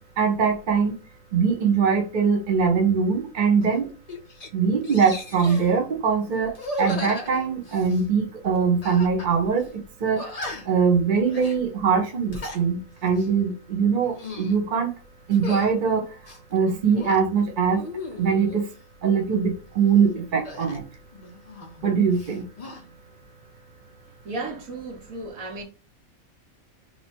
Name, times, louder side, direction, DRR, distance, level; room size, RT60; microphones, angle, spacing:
voice 1, 0.2-0.9 1.3-3.9 4.5-6.5 6.8-9.7 10.0-10.2 10.7-14.9 15.3-16.0 16.5-17.8 18.2-18.6 19.0-20.8 21.8-22.4, right 6 dB, 40° right, 0.8 m, -22 dB
sound 1, 3.6-3.8 4.1-4.5 4.8-5.7 6.5-8.1 8.8-9.3 9.6-9.7 10.2-10.8 11.3-11.6 12.1-12.6 13.1-13.3 14.0-14.6 15.3-15.7 16.2-17.2 17.7-18.6 20.4-21.9 22.1-22.8, left 2 dB, 35° left, 0.6 m, -36 dB
voice 2, 24.2-25.6, right 2 dB, 75° right, 1.6 m, -34 dB
2.9 x 2.9 x 4.3 m
omnidirectional pair, 1.4 m